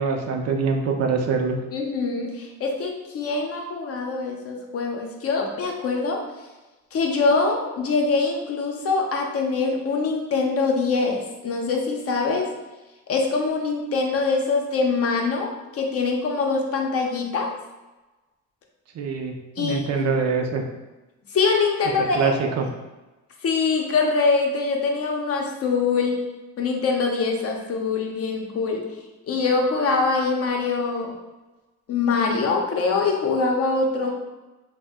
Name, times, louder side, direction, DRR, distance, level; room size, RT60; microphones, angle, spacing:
voice 1, 0.0-1.6 18.9-20.6 22.0-22.7, right 5 dB, 60° right, 3 dB, 0.5 m, -24 dB
voice 2, 1.7-6.2 6.9-12.5 13.1-17.5 19.6-20.1 21.3-22.4 23.4-26.2 26.6-28.8 29.3-31.1 31.9-34.1, left 4 dB, 50° left, 1 dB, 0.6 m, -23 dB
2.5 x 2.1 x 3.5 m, 1.1 s
cardioid pair, 90°, 30 cm